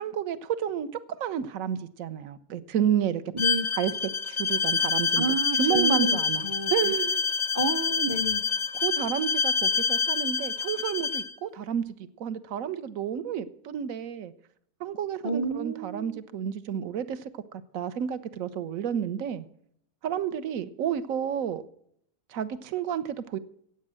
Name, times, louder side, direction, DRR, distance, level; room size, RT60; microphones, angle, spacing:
voice 1, 0.0-3.2 3.8-3.9 4.3-5.2 5.6-6.4 6.7-7.2 8.7-11.8 12.2-14.3 14.8-17.3 17.7-19.5 20.0-21.6 22.3-23.4, right 9 dB, 60° right, 1.3 m, -30 dB
voice 2, 3.3-3.7 5.2-6.9 7.5-8.4 15.2-16.2, right 3 dB, 20° right, 0.6 m, -30 dB
Bowed string instrument, 3.4-11.3, left 5 dB, 45° left, 0.5 m, -27 dB
15.5 x 8.8 x 7.5 m
omnidirectional pair, 1.7 m